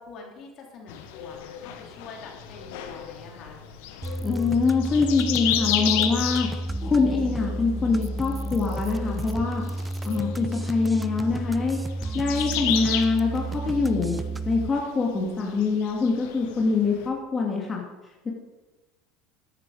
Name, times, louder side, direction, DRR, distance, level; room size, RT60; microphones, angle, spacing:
voice 1, 0.0-3.6, left 4 dB, 55° left, 0 dB, 3.5 m, -45 dB
sound 1, 0.9-17.1, left 10 dB, 75° left, 1.5 m, -33 dB
sound 2, 4.0-14.7, right 2 dB, 15° right, 0.6 m, -32 dB
voice 2, 4.2-6.5 6.8-9.6 10.0-11.8 12.1-14.1 14.4-17.8 18.2-18.3, left 4 dB, 25° left, -1 dB, 2.7 m, -24 dB
13.5 x 10.5 x 5.1 m, 1.2 s
hypercardioid pair, 90°, 0 cm